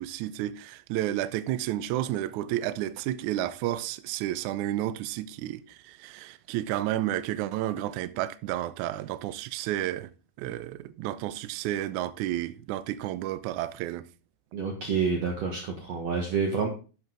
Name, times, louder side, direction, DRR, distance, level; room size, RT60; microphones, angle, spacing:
voice 1, 0.0-10.1 10.4-14.0, right 13 dB, 85° right, 1.7 m, -31 dB
voice 2, 14.5-16.7, right 5 dB, 55° right, 2.1 m, -28 dB
11.5 x 7.7 x 3.8 m
omnidirectional pair, 4.2 m